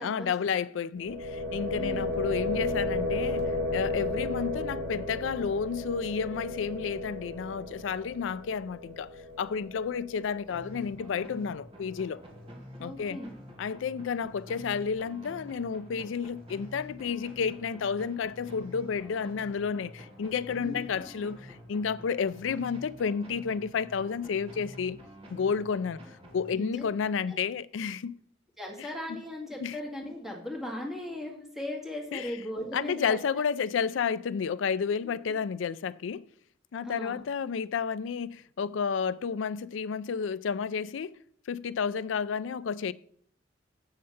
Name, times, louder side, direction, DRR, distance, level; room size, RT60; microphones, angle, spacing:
voice 1, 0.0-12.2 12.8-13.2 13.6-25.0 25.3-26.0 26.3-28.1 28.8-29.2 29.6-29.8 32.1-32.3 32.7-36.3 36.7-41.2 41.5-42.9, left 6 dB, 80° left, 0.4 m, -31 dB
sound 1, 1.0-10.8, left 2 dB, 85° right, 3.3 m, -34 dB
sound 2, 10.5-27.0, equal, 30° right, 2.1 m, -48 dB
voice 2, 12.8-13.3 20.6-20.9 26.5-26.9 27.3-27.4 28.6-33.2 35.0-35.1 36.8-37.2, left 1 dB, ahead, 2.1 m, -38 dB
7.5 x 6.5 x 5.7 m
head